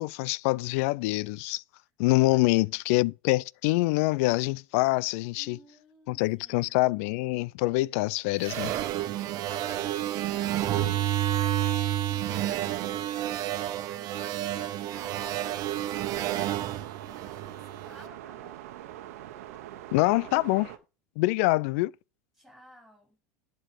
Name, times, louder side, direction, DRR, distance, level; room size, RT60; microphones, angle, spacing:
voice 1, 0.0-1.6 2.0-5.6 6.1-8.7 19.9-20.7 21.2-21.9, left 21 dB, 60° left, 0.3 m, -25 dB
voice 2, 5.4-6.7 11.2-18.6 22.4-23.2, equal, ahead, 5.5 m, -55 dB
sound 1, 8.4-17.9, right 12 dB, 50° right, 1.2 m, -30 dB
sound 2, 14.9-20.8, right 13 dB, 65° right, 1.1 m, -43 dB
11.0 x 5.2 x 4.8 m
hypercardioid pair, 85°, 8 cm